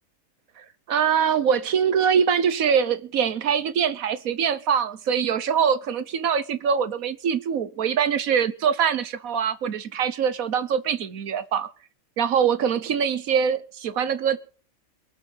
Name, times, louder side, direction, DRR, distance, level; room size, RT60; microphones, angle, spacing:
voice 1, 0.6-11.7 12.2-14.4, right 7 dB, 80° right, 1.5 m, -23 dB
23.0 x 7.8 x 5.6 m
omnidirectional pair, 1.4 m